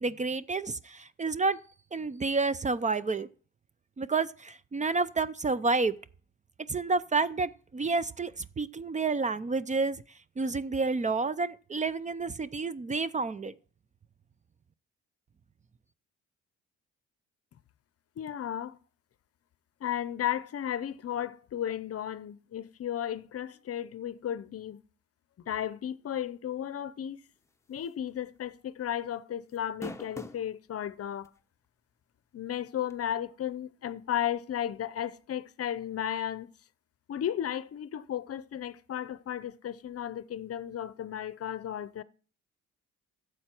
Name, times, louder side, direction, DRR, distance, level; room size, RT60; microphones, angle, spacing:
voice 1, 0.0-1.6 1.9-3.3 4.0-5.9 6.7-10.0 10.4-13.5, right 4 dB, 25° right, 0.5 m, -29 dB
voice 2, 18.2-18.8 19.8-24.8 25.5-27.2 27.7-31.3 32.3-36.5 37.1-42.0, left 10 dB, 50° left, 0.7 m, -34 dB
sound 1, 27.9-28.1 28.4-28.5 29.5-30.5 31.2-31.3 32.9-33.0, left 1 dB, 10° left, 0.9 m, -41 dB
12.5 x 7.6 x 4.5 m
cardioid pair, 90°, 30 cm